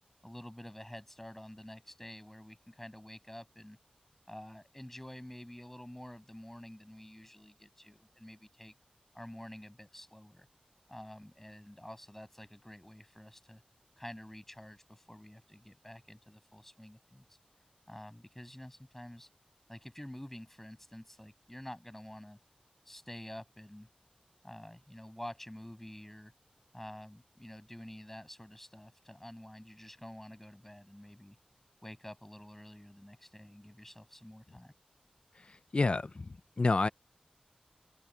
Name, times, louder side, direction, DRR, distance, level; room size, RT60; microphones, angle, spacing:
voice 1, 0.2-3.8 4.3-8.7 9.1-10.5 10.9-13.6 14.0-17.4 17.9-19.3 19.7-22.4 22.9-23.9 24.4-26.3 26.7-31.4 31.8-34.7, left 1 dB, 10° left, 7.3 m, -49 dB
voice 2, 35.7-36.3 36.6-36.9, left 3 dB, 50° left, 0.6 m, -28 dB
open air
wide cardioid pair, 85°, 2 cm